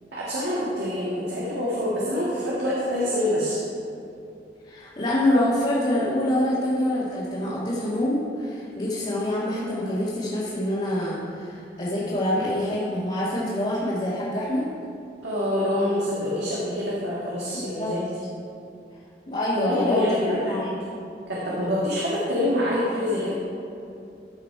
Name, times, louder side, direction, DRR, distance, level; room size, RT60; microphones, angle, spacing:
voice 1, 0.1-3.6 15.2-18.1 19.6-20.5 21.3-23.3, left 1 dB, 75° right, -7 dB, 1.9 m, -26 dB
voice 2, 4.6-14.7 17.5-17.9 19.3-20.1 20.4-20.9, left 1 dB, 35° left, -10 dB, 2.0 m, -26 dB
14.5 x 5.7 x 4.7 m, 2.6 s
head